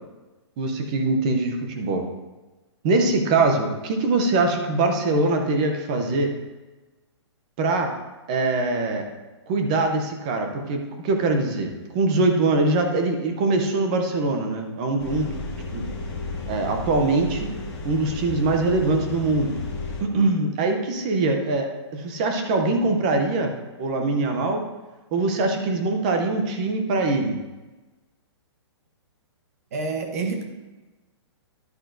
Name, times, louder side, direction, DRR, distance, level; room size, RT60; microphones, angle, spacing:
voice 1, 0.6-2.0 2.8-6.3 7.6-7.9 8.3-9.0 9.5-15.4 15.7-15.8 16.5-17.5 17.8-19.6 20.0-24.6 25.1-27.4, right 3 dB, 15° right, 4 dB, 0.5 m, -23 dB
sound 1, 15.0-20.0, left 2 dB, 10° left, 0.9 m, -33 dB
voice 2, 29.7-30.4, right 4 dB, 35° right, 4 dB, 1.0 m, -27 dB
10.5 x 8.8 x 2.6 m, 1.2 s
hypercardioid pair, 180°, 15 cm